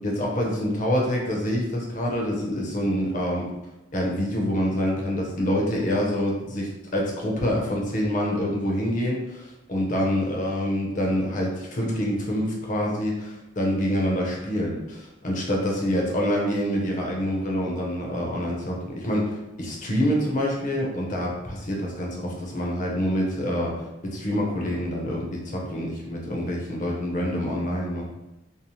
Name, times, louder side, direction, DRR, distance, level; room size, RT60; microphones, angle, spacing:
voice 1, 0.0-3.5 3.9-28.1, equal, 40° left, -2 dB, 0.6 m, -26 dB
2.7 x 2.0 x 3.0 m, 0.99 s
head